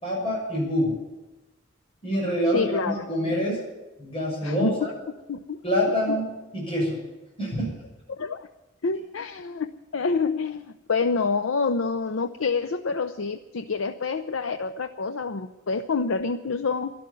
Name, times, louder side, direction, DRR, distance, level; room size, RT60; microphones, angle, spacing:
voice 1, 0.0-1.0 2.0-3.6 4.0-4.9 5.6-7.0 7.4-7.7, equal, 30° left, -2 dB, 6.5 m, -26 dB
voice 2, 2.5-3.6 4.4-4.8 5.3-5.6 6.1-6.2 8.1-8.5 8.8-16.9, left 4 dB, 90° left, 9 dB, 0.6 m, -27 dB
12.0 x 12.0 x 9.6 m, 1.1 s
head